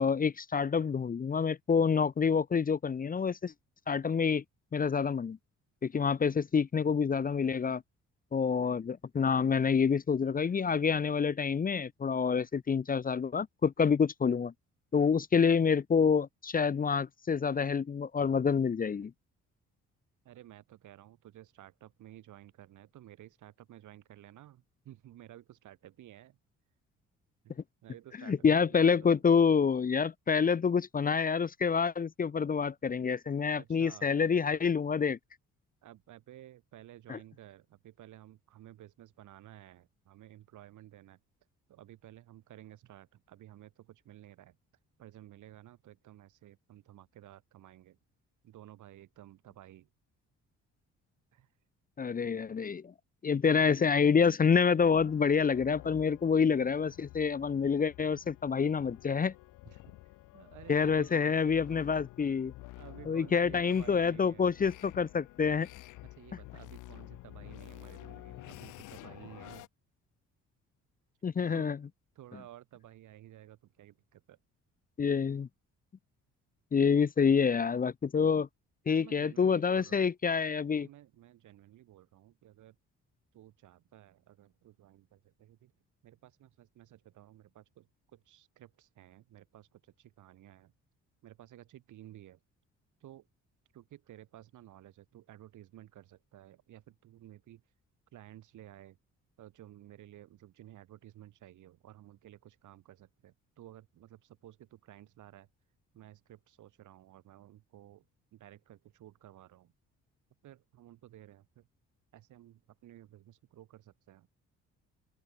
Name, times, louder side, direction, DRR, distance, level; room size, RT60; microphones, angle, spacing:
voice 1, 0.0-3.5 3.9-4.4 4.7-5.4 5.8-7.8 8.3-14.5 14.9-19.1 28.3-35.2 37.1-37.2 52.0-52.9 53.2-59.3 60.7-62.5 63.1-65.7 71.2-71.8 75.0-75.5 76.7-78.5 78.9-80.9, left 6 dB, 30° left, 0.6 m, -27 dB
voice 2, 20.2-26.4 27.4-29.2 33.6-34.1 35.8-41.2 41.7-44.6 45.0-48.0 48.4-49.9 51.3-51.5 59.6-61.7 62.8-64.6 66.1-69.7 71.4-71.7 72.1-74.4 76.9-77.1 78.9-80.1 80.7-82.8 83.3-85.7 86.0-90.7 91.2-92.4 93.0-93.3 93.7-97.6 98.1-99.0 99.4-105.5 105.9-108.1 108.3-109.7 110.4-111.7 112.1-114.3, right 13 dB, 80° right, 4.2 m, -54 dB
sound 1, 54.8-69.7, left 17 dB, 85° left, 0.9 m, -50 dB
open air
cardioid pair, 90°, 30 cm